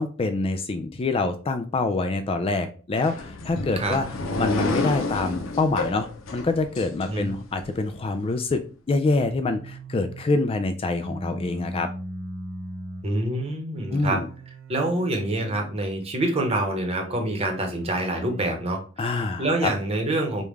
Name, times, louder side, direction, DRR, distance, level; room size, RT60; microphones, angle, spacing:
voice 1, 0.0-4.1 4.4-11.9 13.9-14.3 19.0-19.7, left 3 dB, 30° left, 8 dB, 0.3 m, -26 dB
sound 1, 2.9-7.6, left 2 dB, 85° left, 0.7 m, -30 dB
sound 2, 9.0-10.3 11.0-13.1 13.7-15.7 16.5-18.5, right 1 dB, 80° right, 0.6 m, -39 dB
voice 2, 13.0-14.2 14.7-20.4, right 1 dB, 30° right, 3 dB, 1.0 m, -26 dB
5.2 x 2.3 x 3.2 m, 0.39 s
head